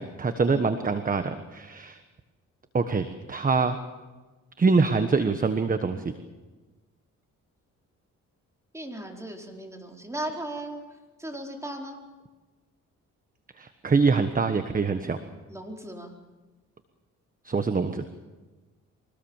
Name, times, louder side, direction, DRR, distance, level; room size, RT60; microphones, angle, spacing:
voice 1, 0.0-2.0 2.7-3.8 4.6-6.1 13.6-15.2 17.4-18.0, right 4 dB, 30° right, 9 dB, 1.3 m, -24 dB
voice 2, 8.7-10.8 11.2-12.0 15.5-16.1, right 1 dB, 10° right, 1 dB, 4.6 m, -37 dB
24.5 x 19.0 x 7.3 m, 1.2 s
cardioid pair, 90°, 30 cm